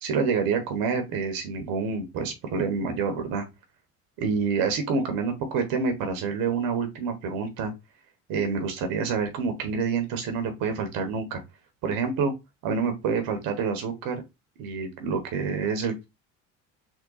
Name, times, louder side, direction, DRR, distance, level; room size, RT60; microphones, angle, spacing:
voice 1, 0.0-3.5 4.2-7.7 8.3-11.4 11.8-12.3 12.6-14.2 14.6-16.0, right 5 dB, 60° right, 6 dB, 1.1 m, -27 dB
3.7 x 2.4 x 4.0 m, 0.23 s
hypercardioid pair, 70°, 39 cm